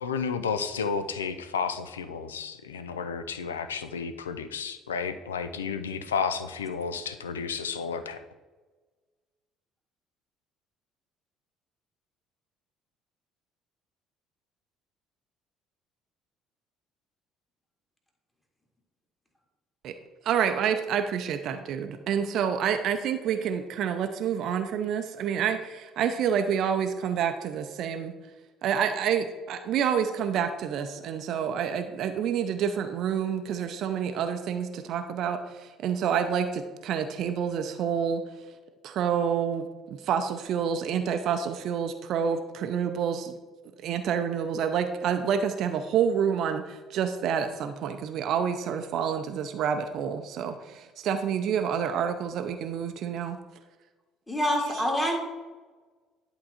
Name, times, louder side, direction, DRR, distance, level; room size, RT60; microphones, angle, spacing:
voice 1, 0.0-8.2, left 6 dB, 80° left, 11 dB, 0.4 m, -32 dB
voice 2, 20.2-28.1 28.6-38.2 38.8-43.3 43.8-53.4 54.7-54.8, right 8 dB, 55° right, 7 dB, 0.5 m, -28 dB
voice 3, 54.3-55.2, equal, 15° left, 1 dB, 2.1 m, -26 dB
11.0 x 3.7 x 4.3 m, 1.3 s
figure-of-eight pair, 55°, 0 cm